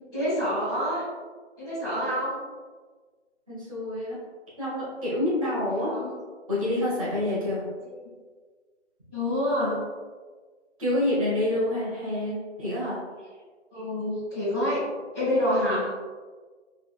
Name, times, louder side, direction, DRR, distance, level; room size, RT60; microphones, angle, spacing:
voice 1, 0.1-1.0 1.6-2.4 5.7-6.1 7.8-7.9 9.1-9.8 13.7-14.8 15.1-15.9, equal, 10° right, -20 dB, 0.7 m, -27 dB
voice 2, 3.5-4.2 4.6-5.9 6.5-7.6 10.8-13.0, left 1 dB, 30° right, -8 dB, 1.3 m, -27 dB
3.6 x 3.0 x 2.3 m, 1.4 s
hypercardioid pair, 165°, 35 cm